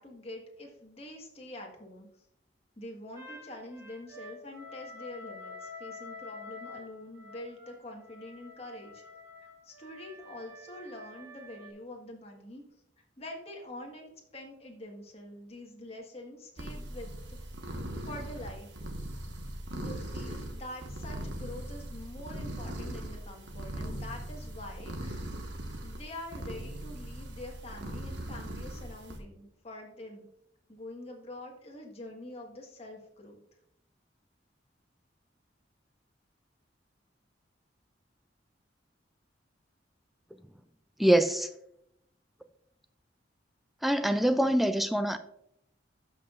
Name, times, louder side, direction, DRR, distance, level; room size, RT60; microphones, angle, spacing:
voice 1, 0.0-2.1 2.8-9.0 9.6-12.6 13.2-17.5 18.0-18.7 19.7-25.3 25.8-30.3 30.7-33.4, left 1 dB, 35° left, 1.6 m, -45 dB
sound 1, 3.2-11.7, left 3 dB, 20° right, 1.7 m, -48 dB
sound 2, 16.6-29.2, right 1 dB, 85° right, 1.4 m, -40 dB
voice 2, 41.0-41.5 43.8-45.2, right 1 dB, ahead, 0.3 m, -24 dB
12.5 x 5.9 x 2.5 m
head